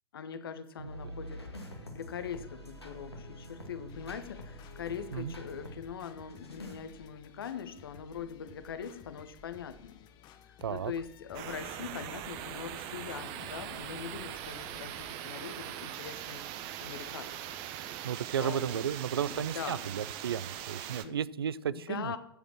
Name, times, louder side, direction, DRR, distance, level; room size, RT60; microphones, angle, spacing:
voice 1, 0.1-1.5 1.9-10.0 10.4-16.4 16.8-17.6 18.0-18.1 18.4-18.9 19.2-19.9 21.0-21.2 21.7-22.2, left 7 dB, 65° left, 12 dB, 1.0 m, -42 dB
sound 1, 0.8-5.8 6.3-6.8, equal, 90° left, 2.0 m, -46 dB
sound 2, 3.9-15.1, left 7 dB, 35° left, 1.0 m, -55 dB
voice 2, 10.6-10.9 18.0-22.2, right 8 dB, 70° right, 20 dB, 0.4 m, -34 dB
sound 3, 11.3-21.0, right 11 dB, 40° right, 0.9 m, -41 dB
14.5 x 5.1 x 6.0 m, 0.77 s
figure-of-eight pair, 100°, 13 cm